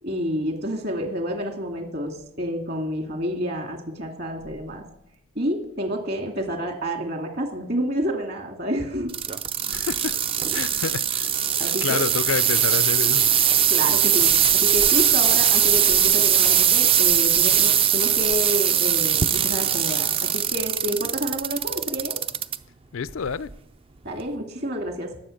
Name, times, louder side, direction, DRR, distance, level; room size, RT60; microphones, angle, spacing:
voice 1, 0.0-4.8 5.4-9.1 11.6-12.0 13.7-22.2 24.0-25.2, equal, 50° right, 2.3 m, -29 dB
sound 1, 9.1-22.6 23.1-23.5 24.2-24.3, right 9 dB, 25° right, 0.4 m, -20 dB
voice 2, 9.7-10.1 10.5-11.2 11.8-13.3 22.9-23.5, left 6 dB, 80° left, 0.5 m, -28 dB
19.0 x 7.6 x 6.5 m
head